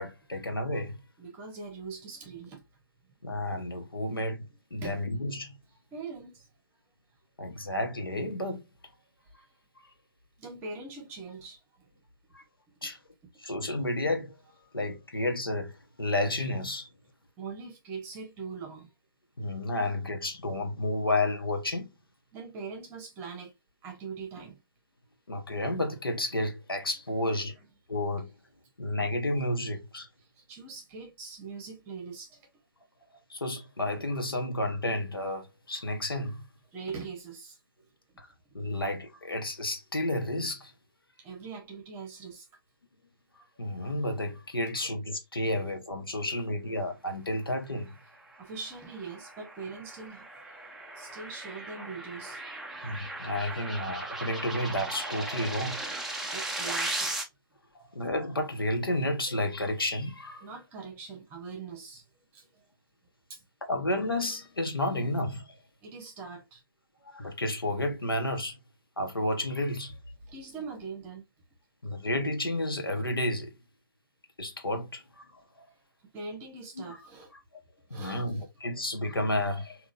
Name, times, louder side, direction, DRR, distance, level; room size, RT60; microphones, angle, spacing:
voice 1, 0.0-1.0 3.2-5.6 7.4-8.6 12.3-12.4 12.8-13.0 13.4-14.4 14.7-16.9 19.4-21.9 25.3-27.6 27.9-28.3 28.8-30.1 33.3-36.4 38.2-38.3 38.5-40.7 43.6-47.9 52.8-55.8 57.7-60.5 63.7-65.5 67.1-68.6 69.0-70.0 71.8-73.5 74.4-75.3 76.8-77.0 77.9-79.8, left 1 dB, 85° left, 1.0 m, -31 dB
voice 2, 1.2-2.6 4.8-5.0 5.9-6.5 10.4-11.6 13.2-13.3 17.4-18.9 22.3-23.5 23.8-24.6 30.4-32.4 36.7-37.6 41.2-42.4 44.8-44.9 45.5-45.6 48.4-50.3 51.0-52.4 56.3-57.2 60.4-62.0 62.3-62.5 63.3-63.4 65.8-66.6 70.2-71.2 76.1-77.3 77.9-78.5, right 4 dB, 20° right, 1.0 m, -42 dB
sound 1, 48.4-57.2, right 2 dB, ahead, 0.4 m, -37 dB
3.6 x 2.5 x 2.5 m
figure-of-eight pair, 135°, 12 cm